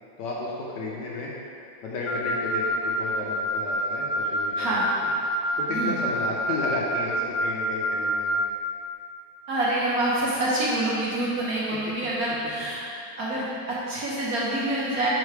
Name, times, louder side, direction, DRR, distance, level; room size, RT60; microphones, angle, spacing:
voice 1, 0.2-1.3 1.8-4.9 5.6-8.4 11.7-11.8, left 3 dB, 70° left, -4 dB, 1.2 m, -33 dB
Wind instrument woodwind instrument, 2.1-8.5, equal, 85° left, 1.4 m, -27 dB
voice 2, 9.5-12.8 13.2-15.1, right 1 dB, 60° right, -7 dB, 1.0 m, -26 dB
4.9 x 4.6 x 4.7 m, 2.5 s
omnidirectional pair, 2.2 m